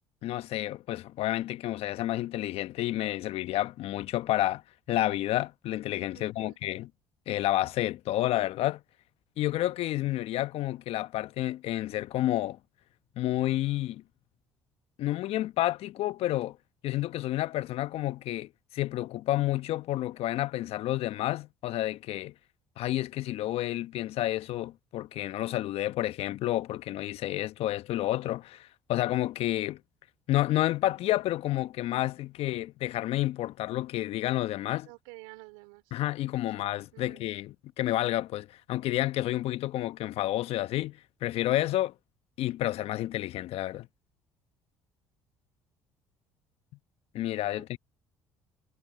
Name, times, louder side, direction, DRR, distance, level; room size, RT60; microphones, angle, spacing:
voice 1, 0.2-4.6 4.9-6.9 7.3-8.8 9.4-12.6 13.2-14.0 15.0-16.6 16.8-22.3 22.8-29.8 30.3-34.9 35.9-41.9 42.4-43.9 47.1-47.8, left 15 dB, 65° left, 1.0 m, -30 dB
voice 2, 6.1-6.6 34.8-35.9 36.9-37.3 47.6-47.7, right 26 dB, 80° right, 2.8 m, -50 dB
hypercardioid pair, 65°, 11 cm